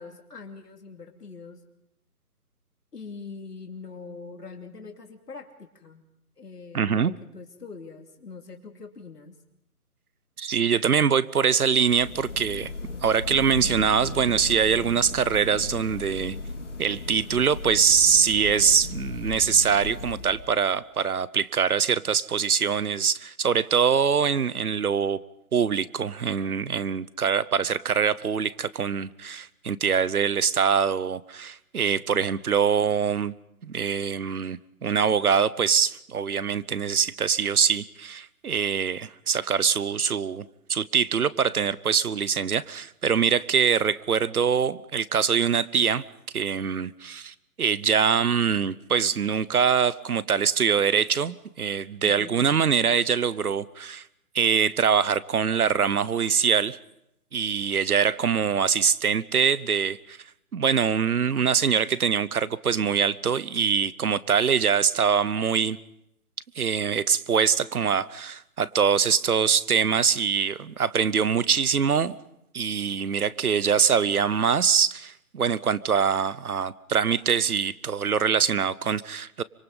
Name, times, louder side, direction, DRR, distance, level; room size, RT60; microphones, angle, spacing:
voice 1, 0.0-1.6 2.9-6.0 6.4-9.4 52.0-52.4, left 4 dB, 90° left, 3 dB, 2.8 m, -43 dB
voice 2, 6.7-7.2 10.4-12.7 13.0-16.4 16.8-25.2 25.5-33.3 33.6-40.4 40.7-46.0 46.3-54.0 54.3-56.8 57.3-60.2 60.5-65.8 66.6-72.2 72.5-79.4, right 7 dB, 70° right, 20 dB, 0.9 m, -23 dB
sound 1, 11.6-20.7, left 3 dB, 50° left, 2.4 m, -36 dB
25.0 x 23.0 x 5.4 m, 0.81 s
hypercardioid pair, 180°, 46 cm